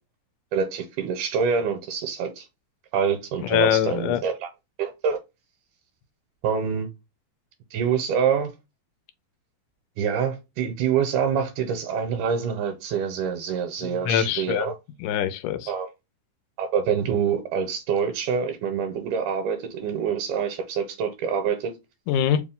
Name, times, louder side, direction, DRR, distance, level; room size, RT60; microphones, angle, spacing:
voice 1, 0.5-2.5 2.9-4.5 4.8-5.2 6.4-6.9 7.7-8.5 10.0-14.7 15.7-15.9 16.6-21.7, right 7 dB, 85° right, 2.2 m, -26 dB
voice 2, 3.4-4.2 13.8-14.7 15.0-15.7 22.1-22.4, left 10 dB, 85° left, 2.1 m, -23 dB
5.0 x 2.4 x 3.6 m
omnidirectional pair, 3.6 m